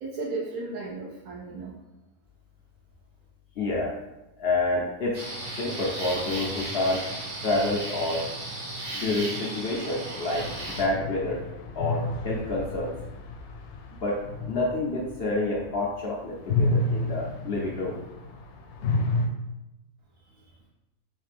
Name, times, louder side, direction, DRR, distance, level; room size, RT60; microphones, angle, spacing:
voice 1, 0.0-1.8 20.2-20.6, right 3 dB, 75° right, -6 dB, 1.1 m, -35 dB
voice 2, 3.6-4.0 4.4-5.2 5.6-7.1 7.4-8.3 8.9-11.4 11.7-12.9 13.9-18.0, left 2 dB, 60° left, -4 dB, 0.7 m, -28 dB
sound 1, 5.1-10.8, right 1 dB, 45° right, 1.0 m, -35 dB
sound 2, 10.3-16.0 16.3-19.3, left 2 dB, 85° left, 1.1 m, -30 dB
3.3 x 3.2 x 3.3 m, 0.98 s
omnidirectional pair, 1.5 m